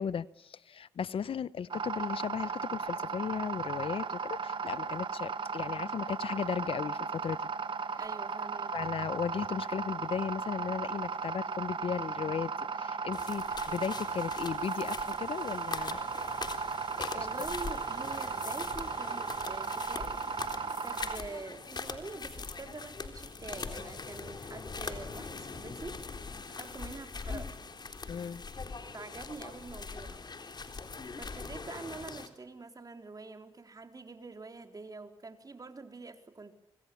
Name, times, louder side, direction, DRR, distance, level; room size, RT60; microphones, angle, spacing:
voice 1, 0.0-7.4 8.7-16.0 17.0-17.3 28.1-28.4, left 7 dB, 65° left, 17 dB, 1.0 m, -36 dB
sound 1, 1.7-21.2, right 5 dB, 55° right, 1.6 m, -36 dB
voice 2, 8.0-9.0 17.1-20.3 20.8-26.1 26.5-27.7 28.9-30.2 31.1-36.6, right 3 dB, 40° right, 6 dB, 4.1 m, -46 dB
sound 2, 13.1-32.3, left 4 dB, 45° left, 3.8 m, -42 dB
25.5 x 25.5 x 7.1 m, 0.90 s
supercardioid pair, 55°, 10 cm